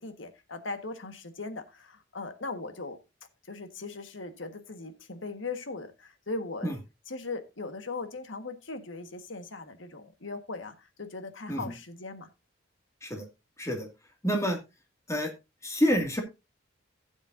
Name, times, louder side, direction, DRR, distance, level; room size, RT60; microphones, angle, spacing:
voice 1, 0.0-3.0 3.5-6.7 7.1-12.3 14.3-14.5, left 3 dB, 85° left, 8 dB, 1.5 m, -39 dB
voice 2, 14.2-14.6 15.1-15.3 15.6-16.2, equal, 15° left, 3 dB, 2.3 m, -28 dB
16.0 x 7.2 x 2.7 m, 0.25 s
head